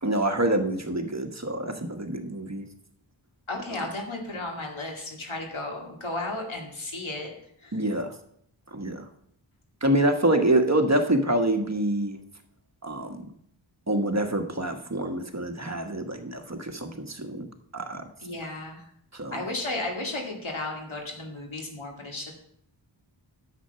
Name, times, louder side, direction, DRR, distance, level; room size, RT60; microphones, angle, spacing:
voice 1, 0.0-2.7 3.7-3.8 7.7-8.1 8.7-9.0 9.8-12.2 12.8-13.2 13.9-17.5 17.7-18.0 19.1-19.4, right 1 dB, 35° right, 5 dB, 1.3 m, -26 dB
voice 2, 3.5-7.3 7.6-7.7 18.2-18.8 19.3-22.3, left 2 dB, 90° left, 1 dB, 2.3 m, -34 dB
10.0 x 7.9 x 5.7 m, 0.70 s
wide cardioid pair, 45°, 46 cm